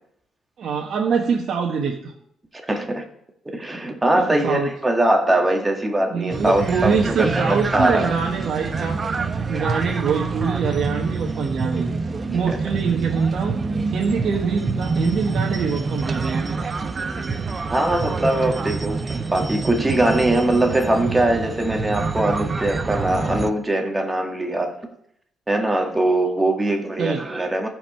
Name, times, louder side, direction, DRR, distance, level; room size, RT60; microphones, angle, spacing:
voice 1, 0.6-2.1 2.8-2.9 4.1-4.7 6.1-9.0 9.5-11.9 12.3-13.6 13.9-16.8 27.0-27.3, right 5 dB, 60° right, -1 dB, 1.2 m, -24 dB
voice 2, 2.6-3.0 3.5-8.1 12.5-12.6 17.7-24.7 25.5-27.7, right 1 dB, 15° right, 3 dB, 1.7 m, -21 dB
sound 1, 6.3-23.5, right 4 dB, 35° right, 0.8 m, -26 dB
14.0 x 4.9 x 5.6 m, 0.73 s
cardioid pair, 90°, 0 cm